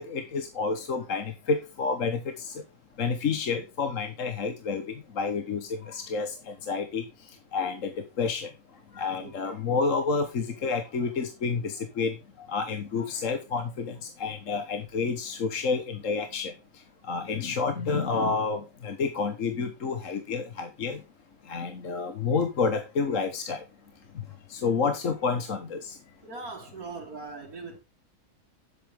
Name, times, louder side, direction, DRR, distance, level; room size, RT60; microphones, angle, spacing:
voice 1, 0.0-2.5 3.0-4.8 5.2-7.0 7.5-7.9 8.2-8.5 8.9-12.1 12.5-13.9 14.2-16.5 17.1-21.0 21.5-23.6 24.5-25.9, left 4 dB, 60° left, 1.6 m, -29 dB
voice 2, 26.2-27.8, right 3 dB, 75° right, 2.7 m, -40 dB
11.0 x 8.1 x 3.7 m
omnidirectional pair, 1.6 m